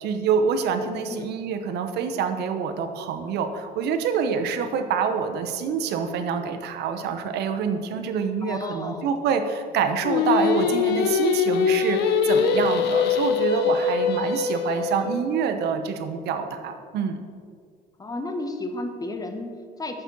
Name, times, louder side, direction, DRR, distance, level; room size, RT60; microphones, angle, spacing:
voice 1, 0.0-17.2, right 6 dB, 75° right, 8 dB, 1.0 m, -26 dB
voice 2, 8.4-9.1 14.7-14.9 18.0-20.0, left 2 dB, 20° left, 5 dB, 1.1 m, -33 dB
Singing, 10.0-15.2, left 6 dB, 80° left, 0.9 m, -23 dB
8.7 x 7.1 x 5.5 m, 2.1 s
cardioid pair, 110°, 17 cm